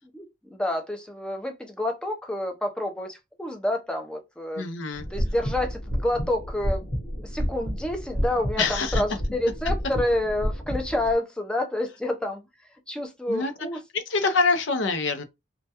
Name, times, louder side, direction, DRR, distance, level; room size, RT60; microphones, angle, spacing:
voice 1, 0.1-4.6 5.1-12.4 12.9-13.8, left 1 dB, 5° left, 0.4 m, -29 dB
voice 2, 4.6-5.1 8.6-9.0 13.3-13.5 13.9-15.2, left 4 dB, 75° left, 0.5 m, -25 dB
sound 1, 4.9-11.1, equal, 35° left, 0.9 m, -30 dB
2.2 x 2.1 x 2.7 m
head